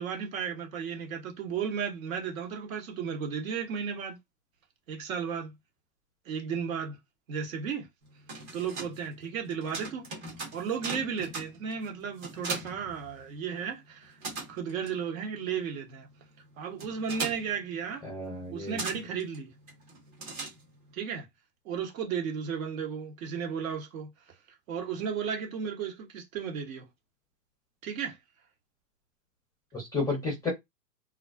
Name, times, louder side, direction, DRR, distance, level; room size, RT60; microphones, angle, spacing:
voice 1, 0.0-4.2 4.9-5.5 6.2-7.0 7.3-7.9 8.5-10.1 10.5-14.2 14.5-16.1 16.6-18.1 18.5-19.5 20.9-21.3 21.6-24.1 24.7-26.9 27.8-28.2, right 7 dB, 55° right, 1.1 m, -34 dB
sound 1, 8.0-13.6 13.9-21.0, right 3 dB, 25° right, 0.9 m, -41 dB
voice 2, 18.0-18.8 29.7-30.5, left 3 dB, 5° left, 0.6 m, -32 dB
2.3 x 2.3 x 2.3 m
hypercardioid pair, 130°, 49 cm